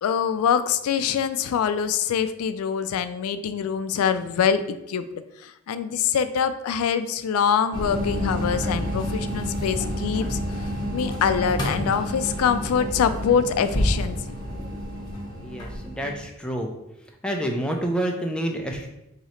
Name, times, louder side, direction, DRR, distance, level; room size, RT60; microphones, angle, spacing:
voice 1, 0.0-4.6 4.9-5.0 5.4-10.4 10.9-14.2, left 7 dB, 80° left, 12 dB, 0.3 m, -24 dB
sound 1, 7.7-16.2, equal, 20° left, 0.8 m, -29 dB
voice 2, 15.4-16.7 17.2-18.9, right 1 dB, 5° left, 1 dB, 0.4 m, -28 dB
2.9 x 2.8 x 4.3 m, 0.88 s
head